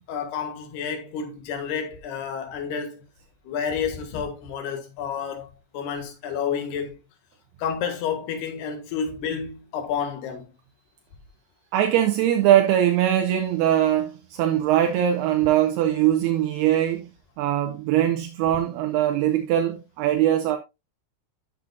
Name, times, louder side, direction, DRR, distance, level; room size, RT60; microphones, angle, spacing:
voice 1, 0.1-3.0 3.4-5.5 5.7-7.0 7.6-10.5, left 7 dB, 65° left, 3.4 m, -30 dB
voice 2, 11.7-17.1 17.4-20.6, right 11 dB, 80° right, 2.4 m, -21 dB
12.5 x 7.3 x 2.4 m
omnidirectional pair, 5.6 m